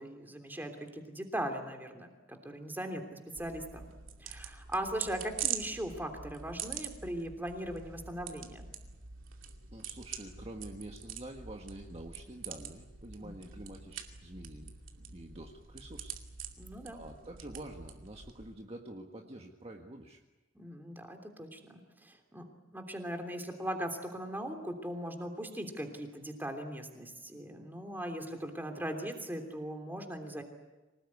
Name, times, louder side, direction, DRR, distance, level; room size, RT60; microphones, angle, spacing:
voice 1, 0.0-3.9 4.2-8.7 13.2-13.5 16.6-17.0 20.5-21.7 22.0-30.4, right 1 dB, 10° right, 5 dB, 3.2 m, -39 dB
sound 1, 3.4-18.5, right 8 dB, 80° right, 2.5 m, -44 dB
voice 2, 9.7-14.7 15.1-16.2 16.9-20.2, right 1 dB, 30° right, 2 dB, 1.6 m, -47 dB
25.5 x 19.0 x 9.7 m, 1.2 s
head